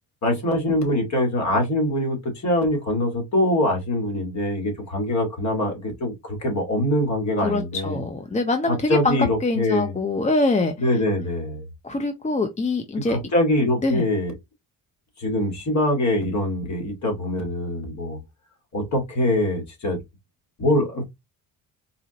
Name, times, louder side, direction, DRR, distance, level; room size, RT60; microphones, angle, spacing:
voice 1, 0.2-8.0 8.9-9.9 10.8-11.7 13.1-14.3 15.2-18.2 18.7-20.0 20.6-21.0, left 1 dB, 45° left, 2.1 m, -23 dB
voice 2, 7.4-11.0 11.8-13.2 13.8-14.0, left 2 dB, 20° left, 0.6 m, -24 dB
4.1 x 2.5 x 2.8 m
supercardioid pair, 70°, 37 cm